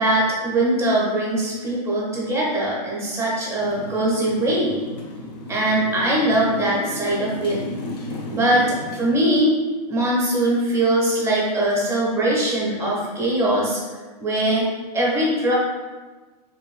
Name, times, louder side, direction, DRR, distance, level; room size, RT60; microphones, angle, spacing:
voice 1, 0.0-4.8 5.5-7.6 8.3-9.6 9.9-13.8 14.2-14.7 14.9-15.5, right 1 dB, 15° right, -5 dB, 0.5 m, -21 dB
Motorcycle, 3.6-9.1, left 2 dB, 75° left, 0.6 m, -34 dB
2.8 x 2.6 x 2.4 m, 1.3 s
hypercardioid pair, 145°, 21 cm